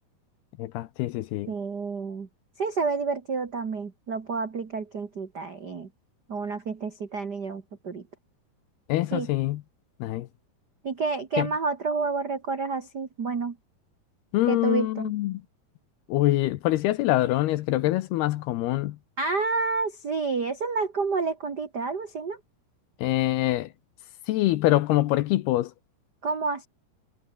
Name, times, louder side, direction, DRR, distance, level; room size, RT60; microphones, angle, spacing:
voice 1, 0.6-1.5 8.9-9.6 10.0-10.3 11.4-11.5 14.3-15.4 16.1-19.0 23.0-23.7 24.3-25.7, left 16 dB, 80° left, 2.8 m, -24 dB
voice 2, 1.5-2.3 2.6-5.9 6.3-8.0 9.1-9.3 10.8-13.5 14.5-15.1 19.2-22.4 26.2-26.7, right 4 dB, 40° right, 1.4 m, -29 dB
omnidirectional pair, 4.8 m